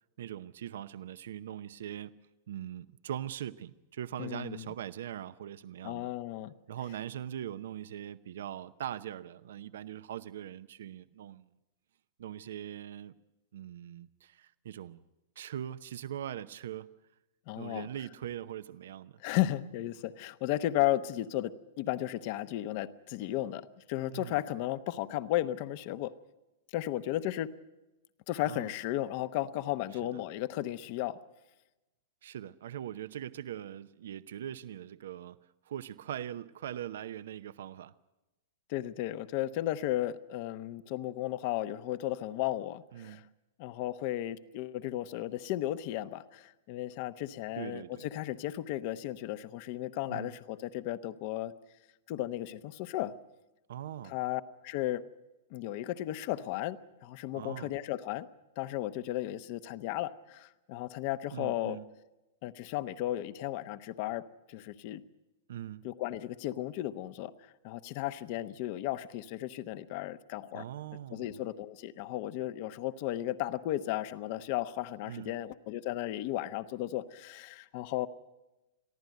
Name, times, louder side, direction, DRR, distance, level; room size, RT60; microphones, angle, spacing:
voice 1, 0.2-6.1 6.7-11.5 12.2-13.1 13.5-15.0 15.4-16.9 17.6-19.2 24.1-24.4 28.4-28.7 30.1-30.2 32.2-35.4 35.6-37.9 42.9-43.3 47.6-48.1 50.1-50.3 53.7-54.2 57.3-57.7 61.3-61.9 65.5-65.9 70.5-71.4 75.0-75.3, right 10 dB, 75° right, 0.7 m, -41 dB
voice 2, 4.2-4.7 5.8-6.5 17.5-17.9 19.2-26.1 26.7-27.5 28.3-31.2 38.7-43.2 43.6-51.5 52.1-53.1 54.0-55.0 55.5-58.3 58.6-61.8 62.4-65.0 65.8-67.3 67.6-70.6 71.1-78.1, left 14 dB, 45° left, 0.9 m, -34 dB
23.0 x 14.5 x 9.3 m
hypercardioid pair, 145°, 0 cm